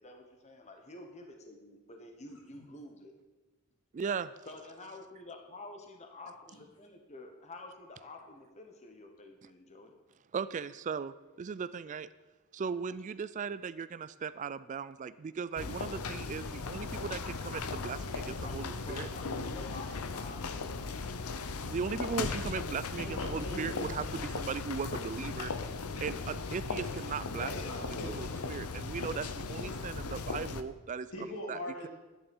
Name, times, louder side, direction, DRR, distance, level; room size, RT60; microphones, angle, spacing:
voice 1, 0.0-3.1 4.5-9.9 18.4-20.8, left 2 dB, 30° left, 3 dB, 1.2 m, -49 dB
voice 2, 4.0-4.3 10.3-12.1 12.5-19.1 21.6-25.5 26.0-27.5 28.0-31.1 31.5-31.6, right 6 dB, 35° right, 16 dB, 0.3 m, -38 dB
sound 1, 15.6-30.6, left 4 dB, 85° left, 0.8 m, -37 dB
voice 3, 22.9-23.9 27.4-28.2 31.1-31.9, equal, 65° left, 0 dB, 2.9 m, -40 dB
12.0 x 9.9 x 5.3 m, 1.2 s
head